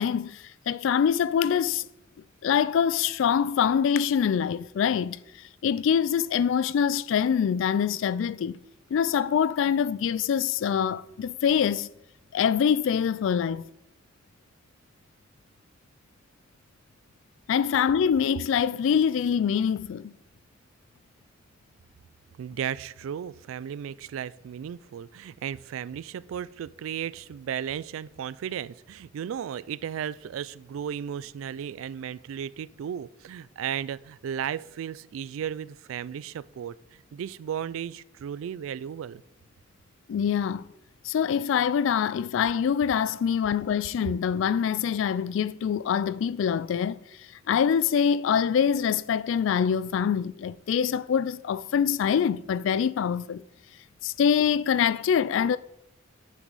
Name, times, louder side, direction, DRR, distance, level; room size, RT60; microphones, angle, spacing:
voice 1, 0.0-1.8 2.4-5.2 5.6-8.6 8.9-11.9 12.3-13.6 17.5-20.1 40.1-40.6 41.0-47.0 47.5-53.4 54.0-55.6, left 7 dB, 65° left, 0.3 m, -24 dB
voice 2, 22.4-39.2, right 9 dB, 85° right, 0.3 m, -35 dB
9.0 x 6.0 x 4.0 m
head